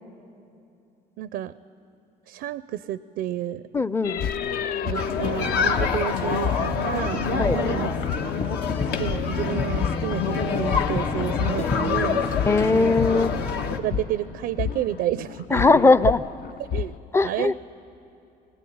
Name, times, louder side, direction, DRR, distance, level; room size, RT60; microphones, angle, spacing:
voice 1, 1.2-1.5 2.3-3.6 4.8-7.9 9.0-12.2 12.7-13.0 13.8-15.9 16.7-17.5, right 12 dB, 80° right, 15 dB, 0.5 m, -30 dB
voice 2, 3.7-4.2 7.4-7.6 12.5-13.3 15.5-16.2 17.1-17.5, left 3 dB, 15° left, 16 dB, 0.5 m, -19 dB
sound 1, 4.0-17.0, left 8 dB, 60° left, 0.6 m, -32 dB
sound 2, 4.9-13.8, left 5 dB, 80° left, 1.4 m, -27 dB
sound 3, 5.4-13.8, left 4 dB, 40° left, 1.4 m, -33 dB
21.5 x 18.5 x 9.4 m, 2.7 s
cardioid pair, 110°, 17 cm